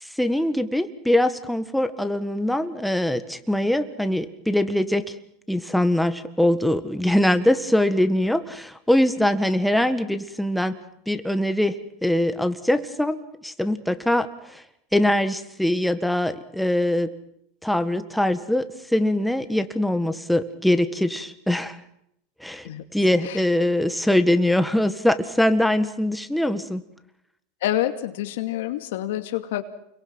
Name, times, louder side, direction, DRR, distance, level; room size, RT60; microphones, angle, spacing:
voice 1, 0.0-5.1 5.5-10.8 11.1-14.6 14.9-17.1 17.6-21.8 22.4-26.8, left 1 dB, ahead, 9 dB, 1.6 m, -22 dB
voice 2, 27.6-29.6, left 13 dB, 80° left, 7 dB, 2.4 m, -27 dB
29.0 x 22.5 x 6.2 m, 0.77 s
supercardioid pair, 125°, 0 cm